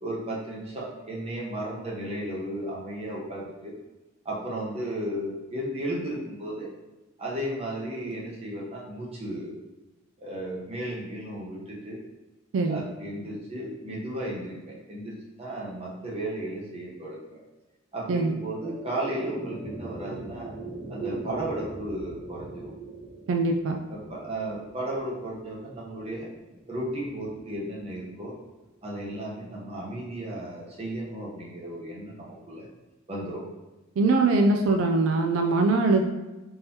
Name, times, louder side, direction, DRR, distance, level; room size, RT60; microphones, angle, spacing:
voice 1, 0.0-3.7 4.2-6.7 7.2-9.6 10.2-12.0 12.7-17.4 17.9-20.5 20.9-22.7 23.9-26.3 26.7-28.4 28.8-32.7 33.1-33.4, right 1 dB, 30° right, -4 dB, 0.8 m, -34 dB
sound 1, 18.0-28.5, right 2 dB, 55° right, 1.1 m, -41 dB
voice 2, 23.3-23.8 34.0-36.1, right 3 dB, 75° right, 3 dB, 0.3 m, -22 dB
3.7 x 2.8 x 2.7 m, 1.1 s
head